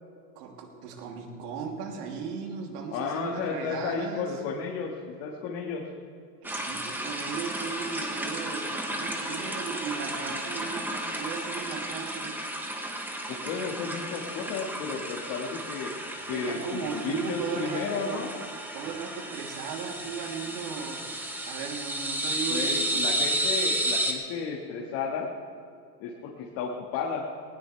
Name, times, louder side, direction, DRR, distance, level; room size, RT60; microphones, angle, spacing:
voice 1, 0.3-4.4 6.4-12.4 16.3-18.2 18.7-23.3, right 5 dB, 65° right, 0 dB, 3.2 m, -37 dB
voice 2, 2.9-5.9 13.3-15.9 16.3-18.3 22.5-25.3 26.0-27.3, left 5 dB, 45° left, -1 dB, 1.9 m, -33 dB
sound 1, 6.4-24.1, right 1 dB, 5° right, 1.2 m, -33 dB
19.5 x 17.5 x 3.4 m, 2.3 s
supercardioid pair, 135°, 50 cm